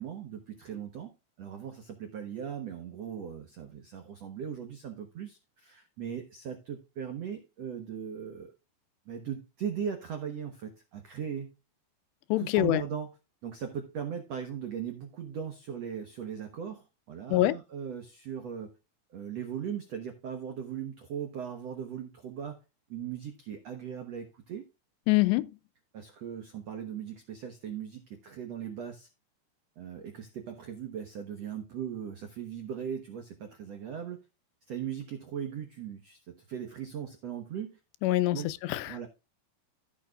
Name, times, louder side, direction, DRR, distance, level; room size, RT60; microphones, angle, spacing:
voice 1, 0.0-8.5 9.1-11.5 12.4-13.1 13.4-18.8 19.1-22.6 22.9-24.6 25.9-29.1 29.8-34.2 34.7-37.8 38.3-38.5 38.9-39.1, right 8 dB, 80° right, 1.4 m, -38 dB
voice 2, 12.3-12.8 17.3-17.6 25.1-25.5 38.0-39.0, left 17 dB, 85° left, 2.8 m, -25 dB
15.0 x 6.7 x 2.4 m
omnidirectional pair, 4.9 m